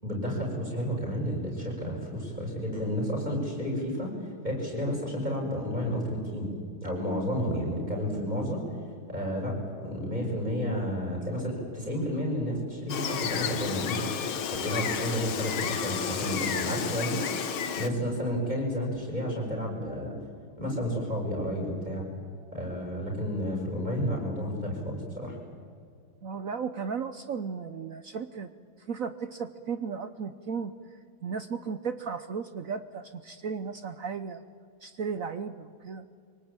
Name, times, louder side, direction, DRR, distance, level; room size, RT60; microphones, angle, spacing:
voice 1, 0.0-4.1 4.4-6.5 6.8-8.6 9.1-14.3 14.6-17.3 17.8-20.1 20.6-22.1 22.5-25.3, equal, 20° right, -2 dB, 6.9 m, -31 dB
Gull seagull, 12.9-17.9, left 7 dB, 70° left, 2.1 m, -31 dB
voice 2, 26.2-28.5 28.8-30.7 31.2-34.4 34.8-36.0, right 6 dB, 70° right, 11 dB, 0.8 m, -35 dB
25.5 x 18.5 x 8.9 m, 2.2 s
omnidirectional pair, 2.4 m